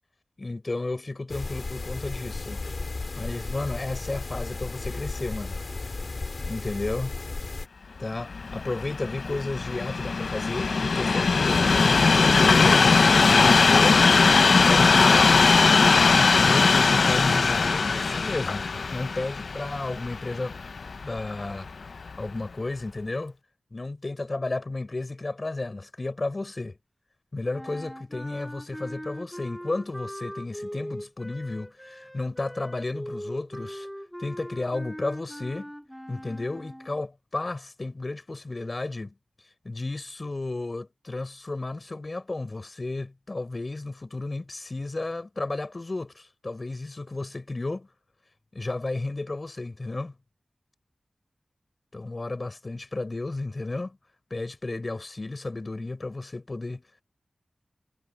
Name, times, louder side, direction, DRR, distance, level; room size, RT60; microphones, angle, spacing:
voice 1, 0.4-2.6 3.2-5.6 6.5-7.1 8.0-14.1 14.6-15.6 16.1-20.6 21.0-21.7 22.0-23.3 23.7-26.8 27.3-33.9 34.2-35.7 36.1-39.1 39.6-47.9 48.5-50.1 51.9-54.0 54.3-56.8, left 2 dB, 40° left, 5.9 m, -33 dB
sound 1, 1.3-7.7, left 3 dB, 55° left, 2.4 m, -34 dB
Train, 8.2-21.4 22.1-22.2, left 4 dB, 75° left, 0.5 m, -20 dB
sound 2, 27.5-37.1, equal, ahead, 2.8 m, -40 dB
wide cardioid pair, 85°, 0 cm